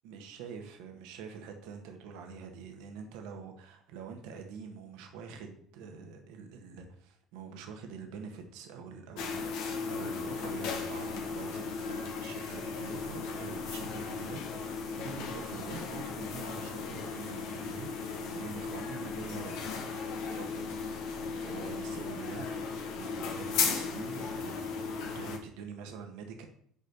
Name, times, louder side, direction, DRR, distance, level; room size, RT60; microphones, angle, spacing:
voice 1, 0.0-14.6 14.9-19.6 20.3-20.7 21.4-22.5 22.8-26.5, right 5 dB, 70° right, 4 dB, 1.7 m, -45 dB
sound 1, 9.2-25.4, left 5 dB, 65° left, 1.5 m, -36 dB
7.4 x 5.1 x 6.9 m, 0.64 s
hypercardioid pair, 60°, 0 cm